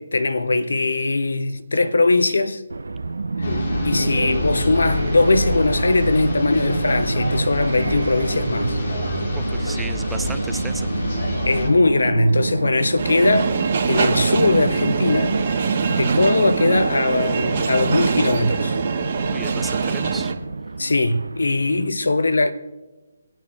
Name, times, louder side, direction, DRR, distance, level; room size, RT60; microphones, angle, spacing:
voice 1, 0.0-2.6 3.4-8.8 11.4-13.5 13.9-15.4 15.9-18.8 20.8-22.5, left 2 dB, 75° left, 0.9 m, -20 dB
sound 1, 2.7-21.9, right 3 dB, 75° right, 0.7 m, -29 dB
sound 2, 3.4-11.7, left 1 dB, 55° left, 2.6 m, -26 dB
voice 2, 9.4-10.9 19.2-20.3, right 4 dB, 5° right, 0.3 m, -35 dB
sound 3, 13.0-20.3, right 5 dB, 40° right, 1.5 m, -23 dB
24.5 x 9.0 x 3.5 m
figure-of-eight pair, 145°, 0 cm